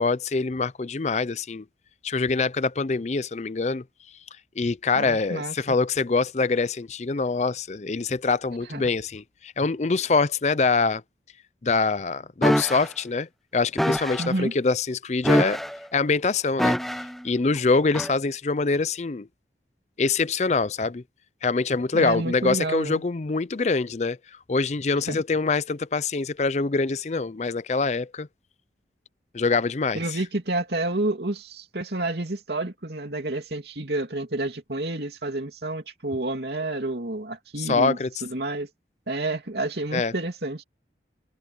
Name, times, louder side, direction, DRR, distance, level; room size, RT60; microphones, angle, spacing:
voice 1, 0.0-1.6 2.0-3.8 4.6-11.0 11.6-15.6 15.9-19.3 20.0-21.0 21.4-28.3 29.3-30.2 37.6-38.1 39.9-40.1, left 4 dB, 40° left, 0.5 m, -25 dB
voice 2, 5.0-5.8 8.7-8.8 14.2-14.5 21.9-23.0 25.1-25.2 29.9-38.7 39.1-40.6, right 2 dB, 65° right, 2.7 m, -29 dB
sound 1, 12.4-12.9 13.8-14.3 15.2-15.9 16.6-17.2 17.9-18.1, equal, ahead, 0.7 m, -24 dB
head